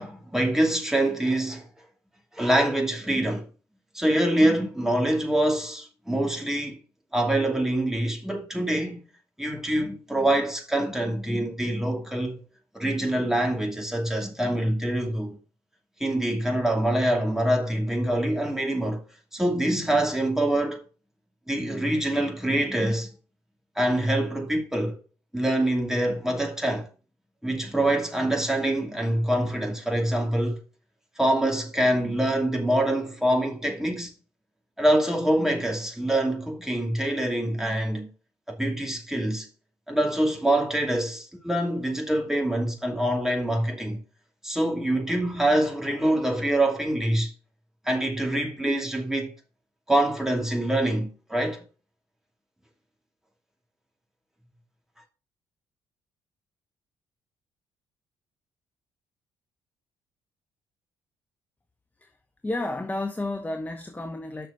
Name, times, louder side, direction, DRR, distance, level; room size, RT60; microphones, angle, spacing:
voice 1, 0.0-1.7 2.3-3.5 3.9-6.8 7.1-9.0 9.4-12.4 12.7-15.4 16.0-19.0 19.3-20.8 21.5-23.1 23.8-25.0 25.3-26.9 27.4-30.6 31.2-34.1 34.8-38.1 38.6-39.5 39.9-44.0 44.4-47.3 47.9-49.3 49.9-51.6, right 1 dB, 5° right, 2.5 m, -25 dB
voice 2, 62.4-64.5, left 2 dB, 10° left, 1.0 m, -31 dB
6.9 x 6.0 x 6.2 m
figure-of-eight pair, 45°, 13 cm